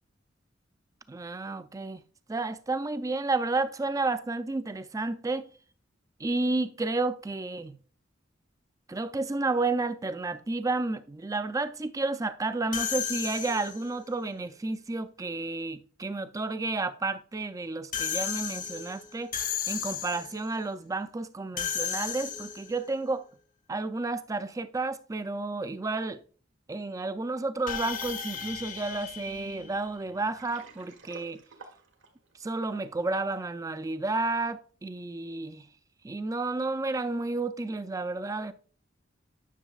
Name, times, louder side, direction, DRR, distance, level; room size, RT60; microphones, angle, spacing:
voice 1, 1.1-2.0 2.3-5.5 6.2-7.8 8.9-19.3 19.7-23.2 23.7-26.2 26.7-31.4 32.4-35.7 36.0-38.5, right 3 dB, 15° right, 0.4 m, -31 dB
sound 1, 12.7-14.0 17.9-20.4 21.6-22.8 27.7-30.2, left 7 dB, 45° left, 0.8 m, -34 dB
Water, 30.2-33.3, right 3 dB, 85° right, 1.5 m, -51 dB
10.0 x 6.2 x 2.4 m
head